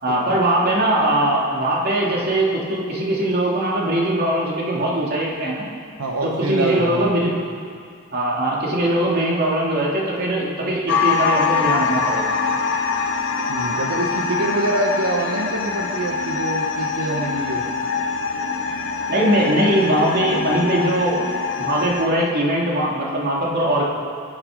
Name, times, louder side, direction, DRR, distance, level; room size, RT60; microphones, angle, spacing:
voice 1, 0.0-5.7 6.2-7.3 8.1-12.4 19.1-21.2 21.6-23.8, right 1 dB, 45° right, -4 dB, 2.9 m, -21 dB
voice 2, 6.0-7.1 13.5-17.6, right 1 dB, 75° right, -1 dB, 1.3 m, -25 dB
sound 1, 10.9-22.1, left 4 dB, 55° left, 1.3 m, -24 dB
23.0 x 9.7 x 5.3 m, 2.3 s
head